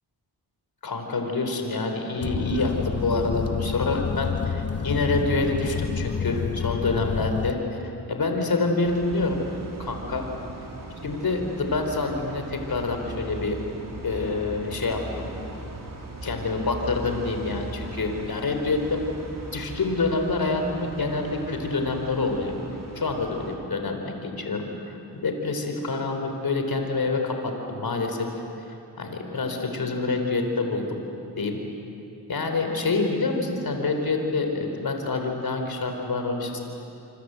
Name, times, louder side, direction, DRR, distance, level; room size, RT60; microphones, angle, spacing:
voice 1, 0.8-7.6 7.8-9.4 9.8-10.3 11.0-13.6 14.0-15.3 16.2-19.0 19.5-22.5 22.9-28.3 28.7-31.0 31.4-31.6 32.3-36.6, left 3 dB, 60° left, 4 dB, 4.1 m, -27 dB
sound 1, 2.2-7.5, left 6 dB, 35° left, 0.9 m, -29 dB
sound 2, 8.8-23.6, right 2 dB, 55° right, 4.4 m, -39 dB
27.0 x 25.0 x 8.2 m, 2.8 s
cardioid pair, 65°, 40 cm